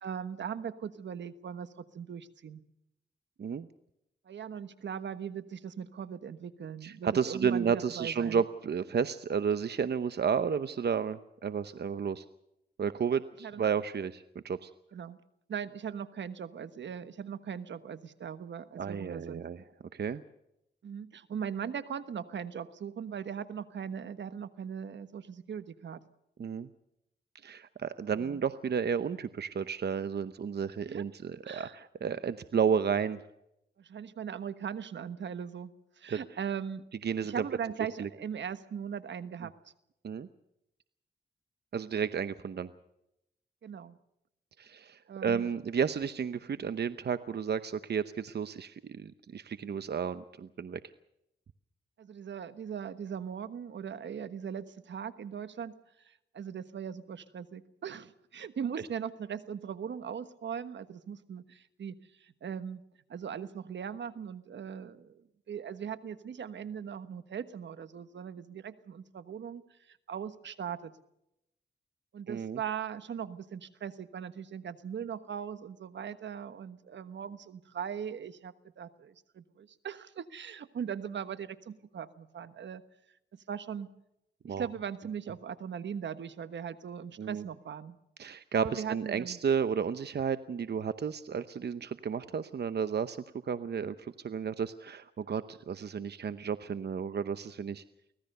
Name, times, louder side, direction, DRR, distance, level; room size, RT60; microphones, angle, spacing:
voice 1, 0.0-2.6 4.2-8.4 13.4-13.7 14.9-15.2 15.5-19.4 20.8-26.0 28.1-28.4 30.8-31.0 31.4-31.8 33.8-36.8 37.2-39.5 43.6-44.0 45.1-45.5 52.0-55.8 56.0-62.8 63.1-65.2 65.5-70.9 72.1-82.8 83.3-83.9 84.5-88.0 88.6-89.4, right 7 dB, 85° right, 12 dB, 1.3 m, -39 dB
voice 2, 6.8-12.2 12.8-14.7 18.8-19.6 19.9-20.2 26.4-26.7 27.4-33.2 36.1-36.2 37.0-37.4 38.0-38.1 40.0-40.3 41.7-42.7 44.6-50.8 72.3-72.6 84.4-84.7 87.2-87.4 88.2-93.2 93.4-97.8, right 7 dB, 65° right, 12 dB, 0.9 m, -32 dB
24.5 x 18.0 x 6.7 m, 0.83 s
cardioid pair, 70°, 18 cm